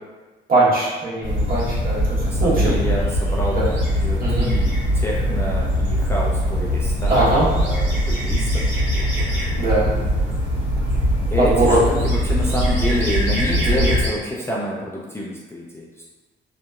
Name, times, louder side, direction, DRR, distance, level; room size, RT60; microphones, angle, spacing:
voice 1, 0.5-2.7 3.5-3.7 4.2-4.5 7.1-7.5 9.6-9.9 11.4-11.8 13.6-13.9, right 2 dB, 45° right, -7 dB, 1.0 m, -20 dB
sound 1, 1.2-14.1, equal, 75° right, 1.4 m, -21 dB
voice 2, 2.2-9.4 9.8-10.0 11.3-16.0, equal, 15° left, -5 dB, 0.3 m, -28 dB
2.8 x 2.0 x 2.2 m, 1.3 s
cardioid pair, 90°, 20 cm